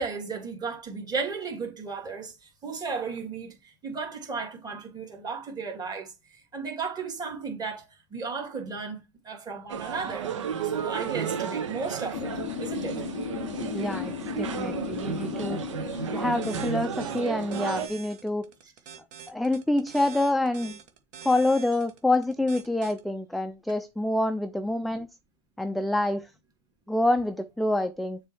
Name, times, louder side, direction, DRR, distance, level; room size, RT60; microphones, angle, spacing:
voice 1, 0.0-7.8 8.1-9.0 9.2-10.3 10.6-13.0, right 4 dB, 25° right, 2.8 m, -34 dB
sound 1, 9.7-17.9, right 7 dB, 85° right, 1.0 m, -33 dB
sound 2, 12.1-17.6, left 18 dB, 60° left, 0.5 m, -36 dB
voice 2, 13.7-15.6 16.1-18.5 19.3-20.8 21.2-25.1 25.6-26.3 26.9-28.2, left 1 dB, ahead, 0.4 m, -27 dB
sound 3, 16.4-23.0, right 7 dB, 55° right, 1.5 m, -45 dB
6.9 x 3.4 x 4.5 m
hypercardioid pair, 100°, 15 cm